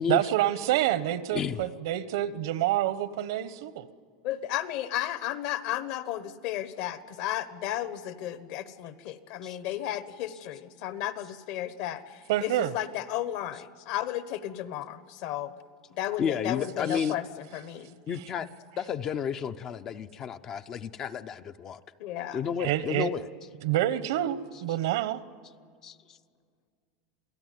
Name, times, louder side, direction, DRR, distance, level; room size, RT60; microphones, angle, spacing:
voice 1, 0.1-3.9 12.3-12.7 16.9-17.0 22.6-23.1 23.6-25.2, right 13 dB, 70° right, 14 dB, 1.0 m, -27 dB
voice 2, 1.3-1.7 9.4-9.6 16.2-17.2 18.1-18.5 18.8-21.8 22.3-23.3 25.8-26.0, left 7 dB, 25° left, 10 dB, 0.5 m, -31 dB
voice 3, 4.2-15.5 15.9-18.0 22.0-22.4, left 12 dB, 50° left, 13 dB, 1.1 m, -34 dB
28.0 x 17.5 x 9.3 m, 2.1 s
supercardioid pair, 170°, 2 cm